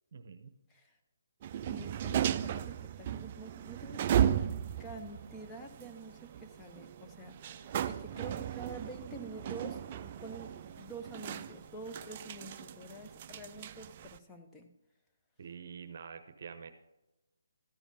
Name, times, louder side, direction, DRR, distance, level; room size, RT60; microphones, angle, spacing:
voice 1, 0.1-0.5 8.1-8.4 15.4-16.7, right 6 dB, 55° right, 9 dB, 0.8 m, -47 dB
sound 1, 1.4-14.2, right 10 dB, 35° right, 0.4 m, -36 dB
voice 2, 1.7-4.5 4.8-14.7, right 2 dB, 10° left, 3 dB, 0.9 m, -47 dB
sound 2, 4.7-13.1, left 1 dB, 65° left, 3.7 m, -64 dB
13.5 x 5.0 x 5.4 m, 0.98 s
hypercardioid pair, 155°, 0 cm